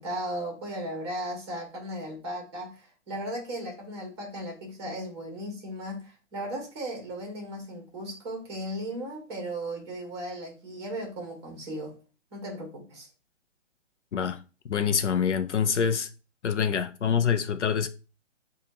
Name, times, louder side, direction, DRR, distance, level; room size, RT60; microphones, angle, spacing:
voice 1, 0.0-11.9 12.3-13.1, right 1 dB, 20° right, 1.2 m, -36 dB
voice 2, 14.7-16.1 16.4-17.9, left 7 dB, 65° left, 0.6 m, -25 dB
6.6 x 2.4 x 2.9 m
hypercardioid pair, 170°, 38 cm